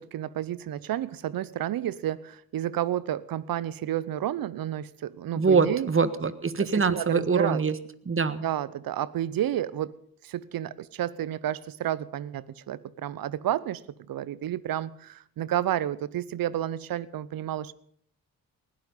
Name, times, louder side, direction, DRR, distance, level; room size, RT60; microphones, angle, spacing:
voice 1, 0.0-5.9 6.6-7.6 8.4-9.9 10.2-13.8 14.1-17.7, right 12 dB, 70° right, 20 dB, 0.9 m, -31 dB
voice 2, 5.3-7.7 8.0-8.4, right 5 dB, 35° right, 13 dB, 1.6 m, -24 dB
19.5 x 13.0 x 5.5 m, 0.64 s
supercardioid pair, 50°, 36 cm